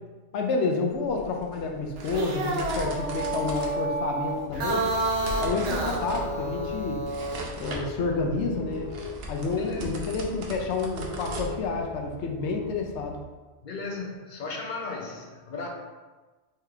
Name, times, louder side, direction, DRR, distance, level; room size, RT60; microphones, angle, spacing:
voice 1, 0.3-4.9 5.4-7.0 7.6-8.9 9.3-13.2, left 4 dB, 80° left, 2 dB, 0.9 m, -29 dB
sound 1, 0.9-12.1, right 2 dB, 65° right, 0.9 m, -40 dB
sound 2, 2.0-7.5, right 2 dB, 85° right, 1.0 m, -29 dB
sound 3, 4.5-13.3, left 2 dB, 15° left, 0.6 m, -41 dB
voice 2, 9.6-10.0 13.6-15.7, left 3 dB, 55° left, 0 dB, 0.6 m, -36 dB
3.7 x 3.2 x 3.3 m, 1.3 s
omnidirectional pair, 1.2 m